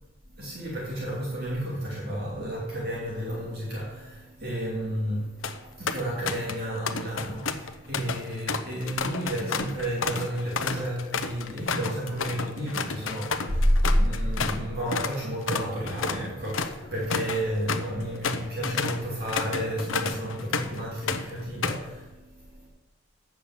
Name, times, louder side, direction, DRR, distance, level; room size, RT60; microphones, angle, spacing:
voice 1, 0.3-22.7, equal, 50° right, -5 dB, 2.5 m, -30 dB
sound 1, 5.2-5.6 5.9-6.6 6.9-14.6 14.9-15.2 15.5-20.8 21.1-21.9, left 5 dB, 75° left, 0.7 m, -31 dB
8.4 x 7.0 x 7.1 m, 1.1 s
head